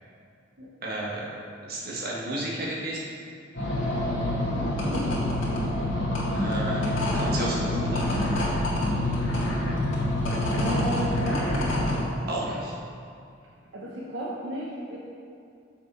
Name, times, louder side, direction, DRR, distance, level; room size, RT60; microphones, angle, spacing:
voice 1, 0.8-1.3 1.6-3.1 6.3-8.0 12.3-12.7, right 1 dB, 55° right, -4 dB, 1.5 m, -32 dB
sound 1, 3.5-12.0, left 1 dB, 85° left, 1.8 m, -26 dB
voice 2, 4.4-5.1 10.5-11.7 13.7-15.0, equal, 75° right, -5 dB, 1.0 m, -34 dB
6.7 x 6.4 x 4.5 m, 2.4 s
head